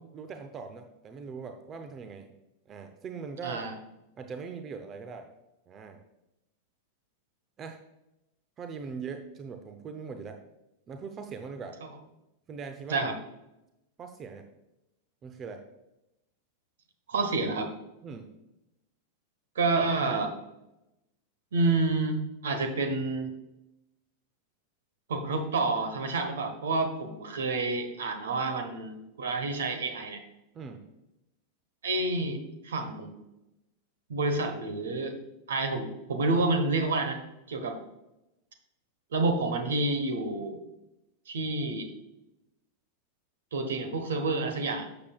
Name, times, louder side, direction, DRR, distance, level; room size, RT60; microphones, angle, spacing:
voice 1, 0.1-2.3 2.7-3.6 4.2-5.3 5.7-6.0 7.6-7.8 8.6-10.4 10.9-11.8 12.5-13.1 14.0-14.5 15.2-15.6 18.0-18.3 30.5-30.8, right 5 dB, 25° right, 6 dB, 0.7 m, -41 dB
voice 2, 3.4-3.7 12.9-13.2 17.1-17.7 19.5-20.3 21.5-23.3 25.1-30.2 31.8-33.2 34.1-35.2 35.5-37.2 37.5-37.8 39.1-40.6 41.3-41.9 43.5-44.9, right 3 dB, 65° right, 7 dB, 1.2 m, -29 dB
11.5 x 7.0 x 2.4 m, 0.91 s
figure-of-eight pair, 90°, 0 cm